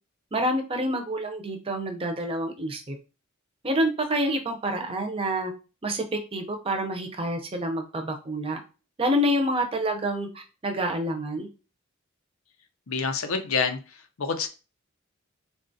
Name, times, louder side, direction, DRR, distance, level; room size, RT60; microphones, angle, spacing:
voice 1, 0.3-3.0 3.6-5.5 5.8-8.6 9.0-10.3 10.6-11.5, equal, 25° right, 4 dB, 0.5 m, -27 dB
voice 2, 12.9-14.5, left 5 dB, 85° left, 6 dB, 0.6 m, -28 dB
3.8 x 2.3 x 2.6 m, 0.32 s
head